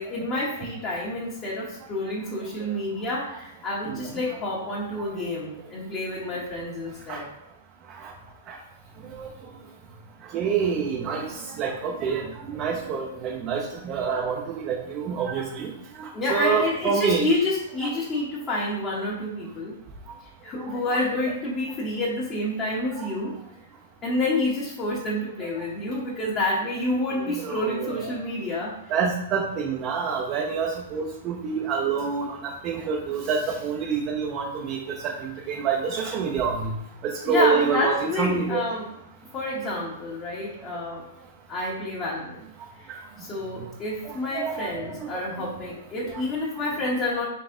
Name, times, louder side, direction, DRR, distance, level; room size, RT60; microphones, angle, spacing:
voice 1, 0.0-7.3 16.1-19.7 20.2-23.4 24.0-28.8 37.2-38.9 39.3-41.1 41.5-42.4 42.7-47.3, left 2 dB, 25° left, -5 dB, 1.1 m, -28 dB
voice 2, 3.9-4.2 7.1-7.2 7.9-8.1 8.5-8.6 9.0-9.5 10.3-15.7 15.9-17.2 17.8-17.9 20.6-21.0 22.9-23.1 27.2-28.2 28.9-36.7 37.0-38.6 42.9-43.0 44.0-45.5 46.0-46.2, right 6 dB, 35° right, -1 dB, 0.7 m, -28 dB
4.1 x 3.3 x 3.7 m, 0.77 s
hypercardioid pair, 135°, 0 cm